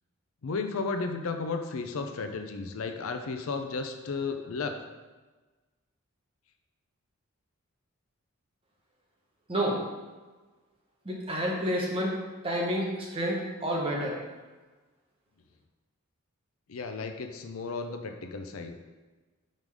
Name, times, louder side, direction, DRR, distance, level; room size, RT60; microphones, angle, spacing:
voice 1, 0.4-4.8 16.7-18.8, left 4 dB, 75° left, 6 dB, 0.5 m, -34 dB
voice 2, 11.0-12.1 12.4-14.1, equal, 25° right, -2 dB, 1.1 m, -29 dB
5.2 x 3.8 x 4.7 m, 1.3 s
head